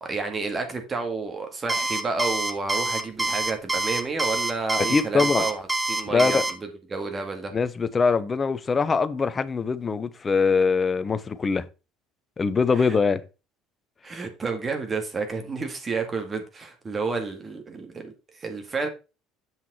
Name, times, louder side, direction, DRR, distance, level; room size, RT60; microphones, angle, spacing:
voice 1, 0.0-5.6 5.9-7.5 12.7-13.0 14.0-18.9, right 4 dB, 30° right, 2.1 m, -30 dB
Alarm, 1.7-6.5, right 2 dB, 15° right, 1.3 m, -26 dB
voice 2, 4.9-5.5 6.1-6.4 7.5-11.7 12.4-13.2, left 5 dB, 30° left, 0.8 m, -23 dB
7.6 x 5.9 x 4.4 m
hypercardioid pair, 65°, 0 cm